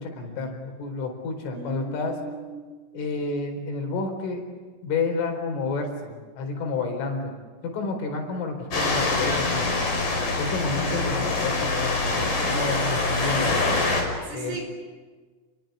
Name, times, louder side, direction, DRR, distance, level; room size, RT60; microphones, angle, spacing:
voice 1, 0.0-2.2 2.9-4.5 4.8-7.3 7.6-9.8 10.4-13.6 14.3-14.6, left 3 dB, 75° left, 4 dB, 6.8 m, -30 dB
voice 2, 1.5-2.7 14.3-14.6, right 4 dB, 80° right, 4 dB, 7.5 m, -37 dB
sound 1, 8.7-14.0, left 3 dB, 45° left, 6.9 m, -24 dB
30.0 x 22.5 x 8.3 m, 1.4 s
omnidirectional pair, 5.7 m